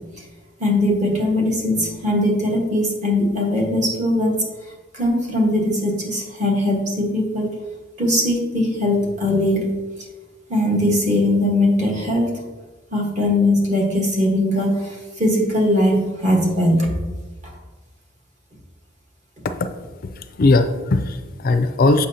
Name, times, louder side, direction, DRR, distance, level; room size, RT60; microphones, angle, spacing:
voice 1, 0.6-4.4 4.9-7.5 8.0-9.7 10.5-12.4 12.9-16.9, left 1 dB, 40° right, -1 dB, 1.4 m, -20 dB
voice 2, 20.2-22.1, left 2 dB, 45° left, 9 dB, 0.4 m, -18 dB
7.5 x 5.5 x 2.8 m, 1.3 s
head